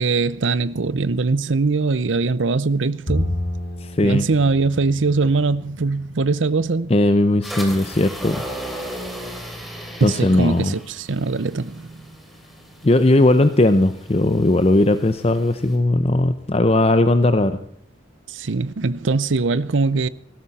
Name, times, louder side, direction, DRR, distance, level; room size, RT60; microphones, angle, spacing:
voice 1, 0.0-3.4 4.0-6.9 10.0-11.9 18.3-20.1, right 3 dB, 85° right, 0.7 m, -21 dB
Bowed string instrument, 3.1-6.5, left 1 dB, 50° left, 6.7 m, -30 dB
voice 2, 3.8-4.2 6.9-8.4 10.0-10.8 12.8-17.6, left 2 dB, 30° left, 0.7 m, -18 dB
sound 1, 7.4-15.8, equal, ahead, 3.0 m, -36 dB
18.0 x 16.0 x 4.2 m
head